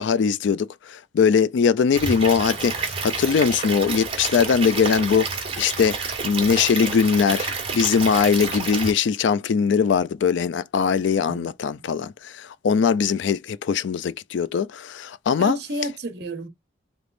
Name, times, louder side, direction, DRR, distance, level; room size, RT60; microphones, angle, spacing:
voice 1, 0.0-15.6, left 6 dB, 65° left, 0.3 m, -21 dB
Stream / Liquid, 1.9-8.9, right 4 dB, 30° right, 1.2 m, -29 dB
voice 2, 11.3-11.9 15.4-16.5, right 1 dB, 55° right, 1.0 m, -32 dB
3.4 x 3.0 x 2.5 m
head